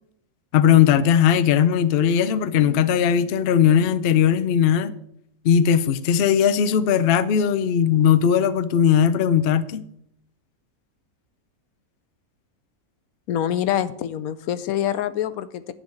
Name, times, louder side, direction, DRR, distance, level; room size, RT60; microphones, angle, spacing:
voice 1, 0.5-4.9 5.4-9.8, left 8 dB, 60° left, 0.6 m, -18 dB
voice 2, 13.3-15.7, left 10 dB, 80° left, 1.0 m, -25 dB
10.5 x 4.0 x 7.6 m
omnidirectional pair, 1.6 m